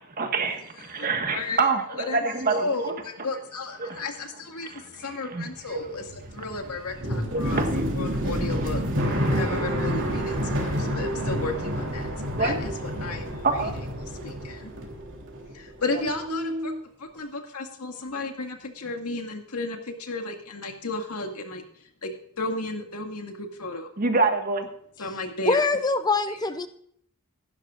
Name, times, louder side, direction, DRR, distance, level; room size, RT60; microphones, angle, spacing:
voice 1, 0.2-0.6 0.9-1.8 2.1-2.9 3.8-3.9 5.4-5.5 7.3-7.7 12.4-12.6 13.4-13.7 24.0-24.7, right 3 dB, 40° right, 5 dB, 1.6 m, -25 dB
voice 2, 0.7-8.8 9.3-12.1 12.4-13.7 14.1-14.7 15.5-16.7 17.0-22.1 22.4-23.9 25.0-25.7 26.3-26.4, left 3 dB, 85° left, 3 dB, 2.2 m, -34 dB
sound 1, 5.6-15.7 15.9-16.8, equal, 60° right, 3.2 m, -29 dB
voice 3, 25.5-26.7, left 3 dB, 20° left, 11 dB, 0.6 m, -24 dB
16.0 x 12.0 x 2.5 m, 0.66 s
head